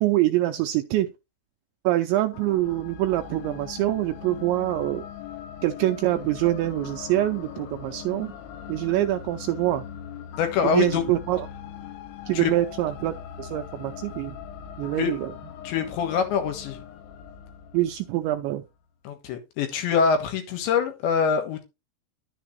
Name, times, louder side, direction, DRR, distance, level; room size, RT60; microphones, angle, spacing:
voice 1, 0.0-1.1 1.8-5.0 5.6-8.3 8.7-9.8 10.6-11.5 12.3-14.4 14.8-15.3 17.7-18.6, right 15 dB, 80° right, 2.6 m, -25 dB
sound 1, 2.3-18.5, left 9 dB, 90° left, 3.7 m, -40 dB
voice 2, 10.4-11.0 12.3-12.5 15.0-15.1 15.7-16.8 19.1-21.7, left 6 dB, 70° left, 3.4 m, -24 dB
11.5 x 7.0 x 3.1 m
omnidirectional pair, 5.7 m